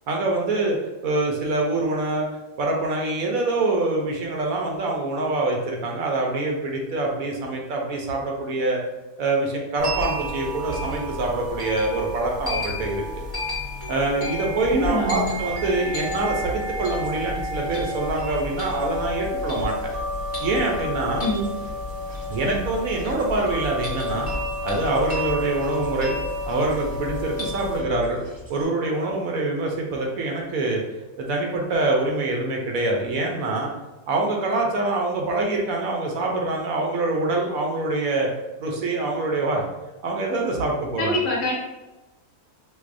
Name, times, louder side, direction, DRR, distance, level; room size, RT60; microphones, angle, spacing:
voice 1, 0.1-0.8 1.0-2.3 2.6-8.8 9.2-13.0 13.9-19.7 20.4-21.3 22.3-24.3 24.6-26.2 26.5-28.2 28.5-30.8 31.2-33.7 34.1-38.3 38.6-39.6 40.0-41.2, right 2 dB, 70° right, 0 dB, 1.0 m, -25 dB
sound 1, 9.8-27.8, left 1 dB, 10° left, 0.7 m, -30 dB
sound 2, 14.6-28.6, left 1 dB, 25° right, 0.7 m, -42 dB
voice 2, 14.7-15.4 21.2-21.4 22.4-22.6 41.0-41.5, left 1 dB, 65° left, -2 dB, 0.9 m, -25 dB
4.6 x 2.0 x 2.5 m, 1.1 s
omnidirectional pair, 1.7 m